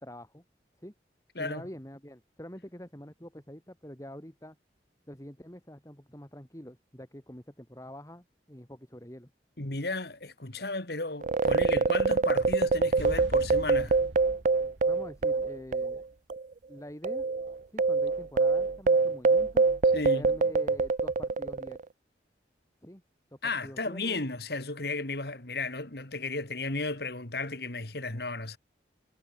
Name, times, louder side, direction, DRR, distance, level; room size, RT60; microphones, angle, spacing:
voice 1, 0.0-0.4 0.8-0.9 1.4-4.6 5.1-9.3 14.8-16.0 16.7-17.2 17.7-19.6 20.1-21.8 22.8-23.0 23.3-24.2, equal, 15° left, 2.8 m, -46 dB
voice 2, 9.6-14.0 19.9-20.3 23.4-28.6, left 3 dB, 60° left, 2.5 m, -34 dB
sound 1, 11.2-16.0 16.3-16.4 17.0-21.8, right 4 dB, 45° right, 0.4 m, -25 dB
sound 2, 13.0-15.9, right 1 dB, 90° right, 2.0 m, -42 dB
head